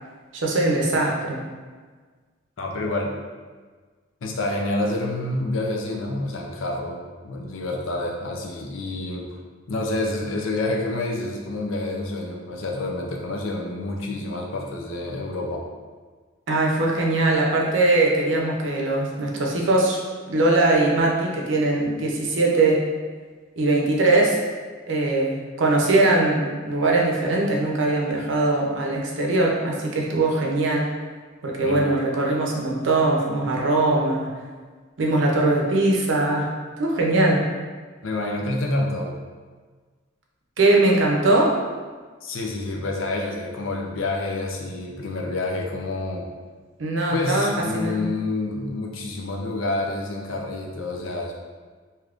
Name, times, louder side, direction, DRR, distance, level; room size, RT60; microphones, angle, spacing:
voice 1, 0.3-1.4 16.5-20.0 20.3-22.9 23.6-24.4 24.9-30.9 31.4-34.3 35.0-37.5 40.6-41.6 46.8-48.1, right 2 dB, 65° right, -1 dB, 0.6 m, -21 dB
voice 2, 2.6-3.1 4.2-7.0 7.2-9.4 9.7-15.6 31.6-31.9 38.0-39.1 42.2-46.3 47.1-51.3, left 2 dB, 80° left, 0 dB, 0.5 m, -28 dB
3.4 x 2.7 x 2.4 m, 1.5 s
head